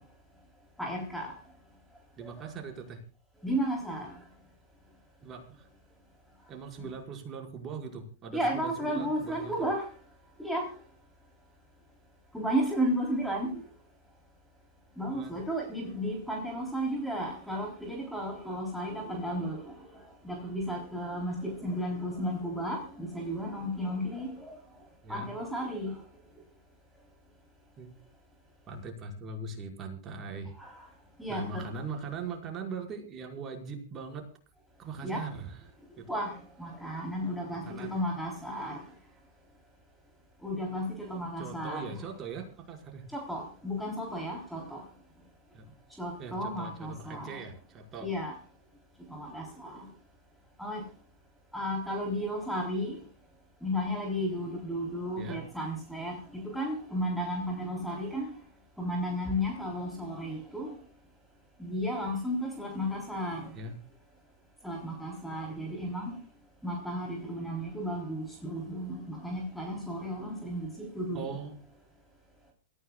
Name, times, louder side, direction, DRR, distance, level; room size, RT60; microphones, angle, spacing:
voice 1, 0.8-1.3 3.4-4.1 6.8-6.9 8.3-9.8 10.4-10.7 12.3-13.6 15.0-19.7 20.2-24.3 25.1-25.9 30.6-30.7 31.2-31.7 35.0-35.2 36.1-38.8 40.4-42.0 43.1-44.8 46.0-47.4 48.0-48.3 49.1-49.9 50.6-50.8 51.5-53.0 53.6-58.3 58.8-60.7 61.6-63.5 64.6-66.1 66.6-71.3, equal, ahead, 0 dB, 3.7 m, -33 dB
voice 2, 2.2-3.0 5.2-5.7 6.5-9.5 15.1-15.3 25.0-25.3 27.8-27.9 28.7-30.5 31.3-34.2 34.8-35.6 36.0-36.1 37.7-37.9 41.4-43.0 45.5-45.6 46.2-48.1 55.2-55.4 63.5-63.7 71.1-71.6, right 4 dB, 30° right, 2 dB, 5.4 m, -40 dB
27.5 x 15.5 x 2.4 m, 0.38 s
figure-of-eight pair, 100°, 0 cm